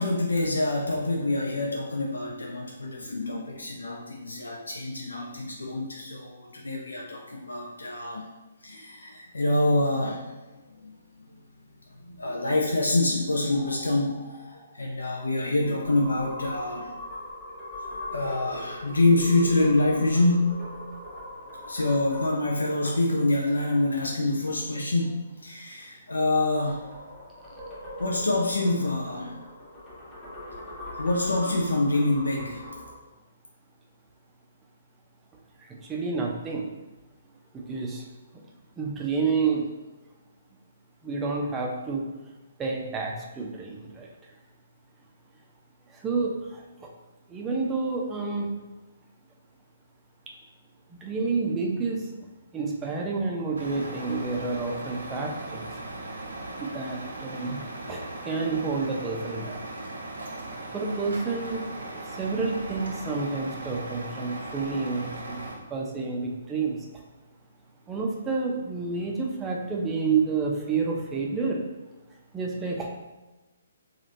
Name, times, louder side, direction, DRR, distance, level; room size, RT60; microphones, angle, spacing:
voice 1, 0.0-8.2 8.6-10.2 10.8-10.9 12.0-14.4 14.7-16.9 18.1-20.5 21.1-21.2 21.7-26.8 28.0-29.3 31.0-32.7, left 2 dB, 75° left, 0 dB, 0.4 m, -26 dB
sound 1, 13.5-24.1 26.1-33.0, left 1 dB, 15° left, 1.0 m, -41 dB
voice 2, 35.7-36.7 37.5-38.0 38.8-39.7 41.0-42.0 42.6-44.1 45.9-46.9 47.3-48.5 50.9-52.1 52.5-55.7 56.6-57.6 57.9-59.6 60.7-61.7 62.2-66.8 67.9-71.6 72.3-73.0, right 4 dB, 15° right, -1 dB, 0.5 m, -29 dB
Truck, 53.6-65.6, right 2 dB, 70° right, 0.6 m, -38 dB
2.9 x 2.4 x 2.6 m, 1.1 s
figure-of-eight pair, 130°, 0 cm